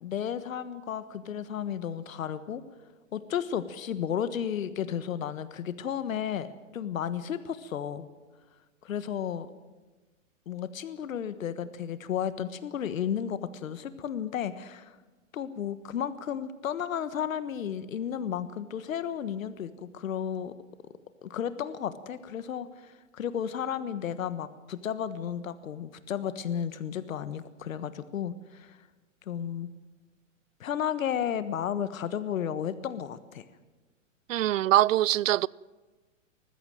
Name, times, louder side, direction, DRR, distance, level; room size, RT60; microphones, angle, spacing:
voice 1, 0.0-2.6 3.1-8.1 8.8-9.5 10.5-15.0 15.3-20.5 21.2-28.8 29.3-29.7 30.6-33.4, left 9 dB, 80° left, 1.4 m, -33 dB
voice 2, 34.3-35.5, right 14 dB, 70° right, 0.6 m, -23 dB
20.0 x 15.0 x 9.1 m
hypercardioid pair, 155°, 40 cm